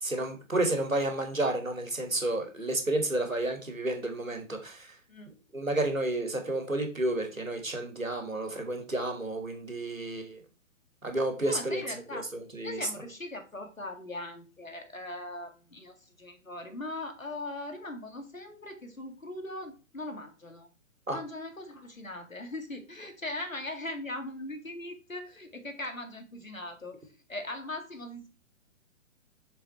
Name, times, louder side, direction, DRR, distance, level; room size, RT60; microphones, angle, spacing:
voice 1, 0.0-4.9 5.5-10.4 11.0-11.8 12.1-12.8 21.1-21.2, right 2 dB, 85° right, 4 dB, 2.7 m, -31 dB
voice 2, 11.4-12.3 12.6-20.7 21.1-27.0 27.3-28.3, left 1 dB, 90° left, 6 dB, 2.1 m, -40 dB
6.8 x 6.8 x 4.4 m, 0.33 s
figure-of-eight pair, 125°, 39 cm